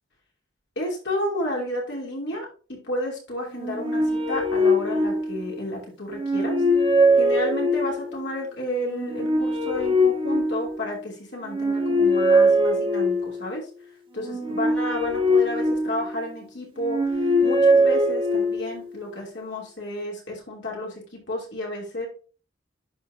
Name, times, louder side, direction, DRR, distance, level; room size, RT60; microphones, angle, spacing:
voice 1, 0.8-6.6 7.2-13.6 14.1-22.1, left 1 dB, 65° left, -2 dB, 3.0 m, -32 dB
sound 1, 3.5-5.6 6.1-8.1 8.8-11.0 11.4-13.5 14.2-16.3 16.8-18.8, equal, 30° right, 1.6 m, -22 dB
11.0 x 4.7 x 2.7 m, 0.37 s
head